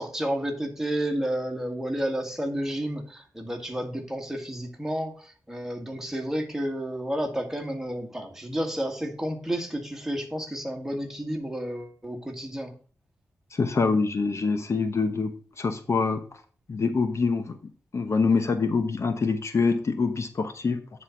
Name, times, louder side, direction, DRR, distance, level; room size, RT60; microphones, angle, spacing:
voice 1, 0.0-12.7, right 1 dB, 5° right, 3 dB, 1.9 m, -31 dB
voice 2, 13.5-16.2 16.7-20.8, left 4 dB, 50° left, 8 dB, 0.9 m, -25 dB
9.6 x 4.2 x 5.8 m, 0.41 s
wide cardioid pair, 110°, 6 cm